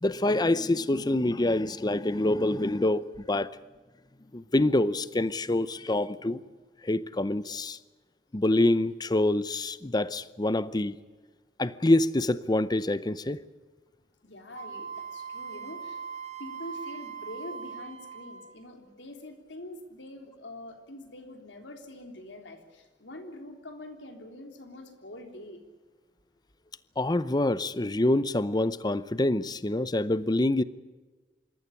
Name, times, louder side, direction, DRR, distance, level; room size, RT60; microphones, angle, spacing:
voice 1, 0.0-3.6 4.3-6.4 6.8-7.8 8.3-11.0 11.6-13.4 27.0-30.6, left 1 dB, 25° left, 0.6 m, -26 dB
voice 2, 14.2-16.0 16.4-25.6, left 1 dB, 85° left, 3.5 m, -45 dB
Wind instrument woodwind instrument, 14.5-18.7, right 6 dB, 40° right, 2.5 m, -40 dB
26.0 x 14.0 x 9.9 m
head